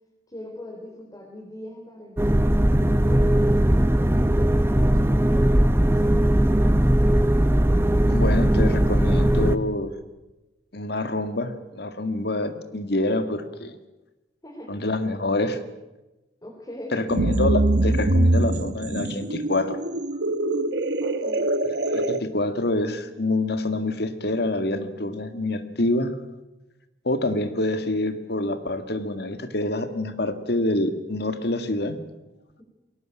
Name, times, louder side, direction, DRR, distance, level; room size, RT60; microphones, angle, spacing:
voice 1, 0.3-2.6 3.0-6.2 14.4-14.7 16.4-17.0 21.0-21.5, left 1 dB, 20° left, -1 dB, 3.8 m, -41 dB
sound 1, 2.2-9.6, right 1 dB, 15° right, 0.8 m, -19 dB
voice 2, 8.1-9.9 10.7-13.8 14.7-15.6 16.9-19.8 21.9-26.1 27.0-32.0, left 2 dB, 65° left, 10 dB, 1.9 m, -26 dB
sound 2, 17.1-22.2, right 1 dB, 70° right, 1.2 m, -23 dB
22.0 x 18.0 x 9.1 m, 1.0 s
head